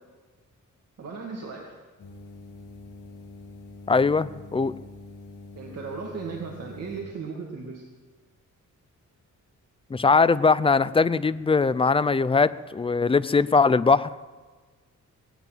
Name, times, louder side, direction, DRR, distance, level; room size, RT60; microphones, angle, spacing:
voice 1, 1.0-1.7 5.5-7.9, right 4 dB, 55° right, -1 dB, 2.2 m, -36 dB
sound 1, 2.0-7.0, left 2 dB, 80° left, 2.8 m, -45 dB
voice 2, 3.9-4.7 9.9-14.1, left 4 dB, 20° left, 16 dB, 0.4 m, -21 dB
19.0 x 8.2 x 9.2 m, 1.4 s
wide cardioid pair, 140°, 31 cm